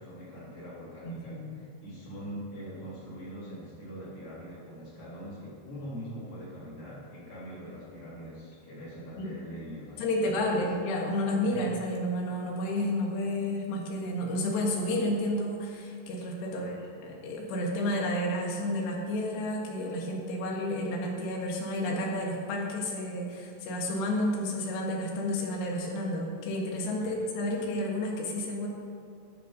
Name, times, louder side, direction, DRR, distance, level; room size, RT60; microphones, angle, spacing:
voice 1, 0.0-10.6 11.5-11.7 16.4-16.9 27.0-27.1, equal, 35° left, -7 dB, 4.1 m, -43 dB
voice 2, 10.0-16.7 17.0-28.7, left 1 dB, 85° left, -1 dB, 3.9 m, -31 dB
12.5 x 10.0 x 5.3 m, 2.5 s
omnidirectional pair, 4.8 m